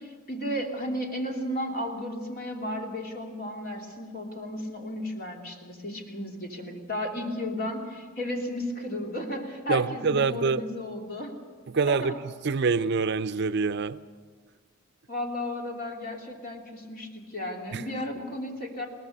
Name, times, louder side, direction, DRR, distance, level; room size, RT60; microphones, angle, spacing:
voice 1, 0.0-11.3 11.9-12.2 15.1-18.9, left 1 dB, 45° left, 1 dB, 3.0 m, -34 dB
voice 2, 9.7-10.6 11.7-12.1 12.4-14.0 17.7-17.8, right 4 dB, 55° right, 13 dB, 0.5 m, -25 dB
22.0 x 18.5 x 6.7 m, 1.5 s
head